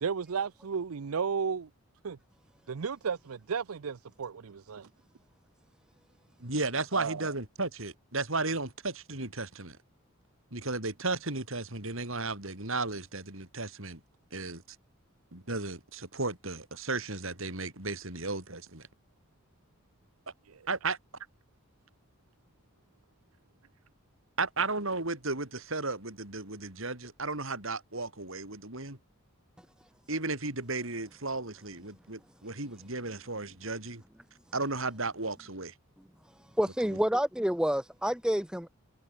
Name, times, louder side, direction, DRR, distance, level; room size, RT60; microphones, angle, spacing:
voice 1, 0.0-1.7 2.0-2.2 2.7-4.9 6.9-7.2, right 6 dB, 85° right, 0.6 m, -33 dB
voice 2, 6.4-9.8 10.5-14.0 14.3-14.6 15.3-18.9 20.7-21.0 24.4-29.0 30.1-34.0 34.5-35.7 36.8-37.0, right 3 dB, 70° right, 4.5 m, -34 dB
voice 3, 36.6-38.7, equal, 5° right, 0.9 m, -28 dB
head